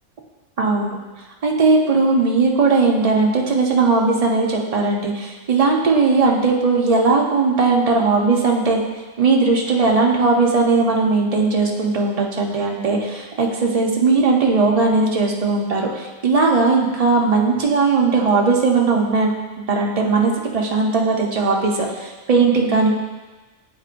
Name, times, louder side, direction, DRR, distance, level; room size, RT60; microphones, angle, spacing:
voice 1, 0.6-1.0 1.4-8.8 9.2-19.3 19.7-22.9, right 4 dB, 40° right, -1 dB, 0.5 m, -18 dB
9.1 x 4.4 x 2.5 m, 1.2 s
omnidirectional pair, 1.5 m